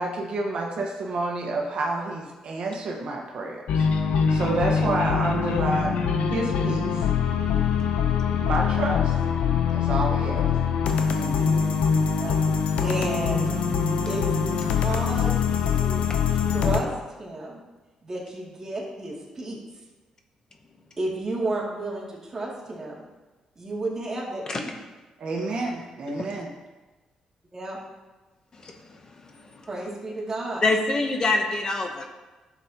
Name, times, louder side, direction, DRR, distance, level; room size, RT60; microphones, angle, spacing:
voice 1, 0.0-3.9 4.3-5.9 6.3-7.1 8.4-9.1 9.7-10.5 11.1-11.5 25.2-26.5, right 2 dB, 60° right, 0 dB, 1.4 m, -29 dB
sound 1, 3.7-16.8, left 7 dB, 85° left, 0.7 m, -23 dB
voice 2, 12.8-13.5 14.1-16.1 16.5-16.9 17.2-17.6 18.0-19.6 21.0-23.0 23.6-24.7 27.5-27.8 29.7-30.6, right 2 dB, 30° right, -4 dB, 2.6 m, -32 dB
voice 3, 30.6-32.1, left 2 dB, 35° left, 4 dB, 0.9 m, -24 dB
11.0 x 7.3 x 3.0 m, 1.2 s
cardioid pair, 110°, 2 cm